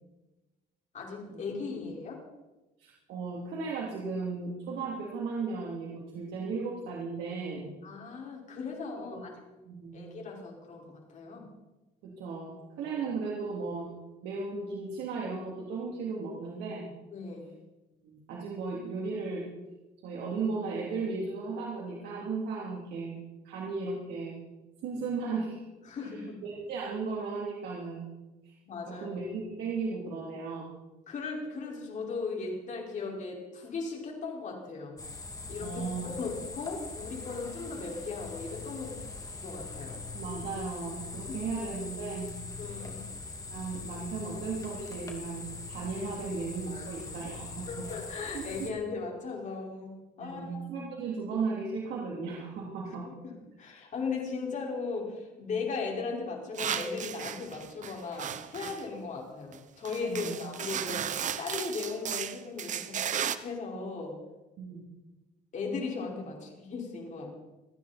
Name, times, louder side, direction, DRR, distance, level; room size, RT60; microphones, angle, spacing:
voice 1, 0.9-2.2 7.8-9.4 9.9-11.5 12.8-13.0 17.1-17.5 25.9-26.4 28.6-29.1 31.1-35.0 35.5-39.0 39.4-40.0 41.3-41.5 42.6-43.1 46.7-46.9 47.7-50.9 53.2-61.0 61.4-63.0 63.4-64.2 65.5-67.3, left 4 dB, 45° left, -1 dB, 5.4 m, -37 dB
voice 2, 2.8-7.7 9.0-9.2 9.6-10.1 12.0-12.5 12.8-13.9 14.2-16.9 18.0-19.4 20.0-23.2 23.4-24.3 24.8-25.6 26.1-28.1 28.4-28.5 28.9-30.7 35.6-36.1 40.1-42.3 43.4-47.7 48.3-48.4 50.2-53.0 60.0-60.3 60.7-60.9 64.6-64.8, right 4 dB, 80° right, -4 dB, 3.4 m, -36 dB
sound 1, 35.0-48.7, left 3 dB, 20° left, 2.8 m, -42 dB
sound 2, 56.5-58.8 59.5-59.6 59.8-63.4, right 9 dB, 45° right, 0.9 m, -35 dB
28.5 x 10.0 x 4.4 m, 1.1 s
cardioid pair, 110°, 17 cm